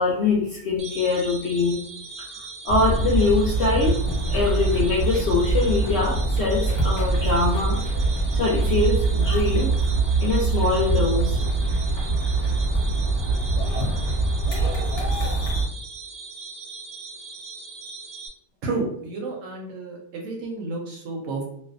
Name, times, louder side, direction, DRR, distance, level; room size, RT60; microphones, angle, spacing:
voice 1, 0.0-1.8 2.6-4.0 4.3-7.8 8.3-9.8 10.2-11.4, left 3 dB, 70° left, -5 dB, 0.6 m, -23 dB
sound 1, 0.8-18.3, right 4 dB, 85° right, 1.1 m, -40 dB
sound 2, 2.7-15.6, right 3 dB, 30° left, 0.8 m, -23 dB
voice 2, 18.6-21.4, right 3 dB, 70° right, 0 dB, 0.8 m, -31 dB
2.5 x 2.1 x 2.4 m, 0.68 s
omnidirectional pair, 1.6 m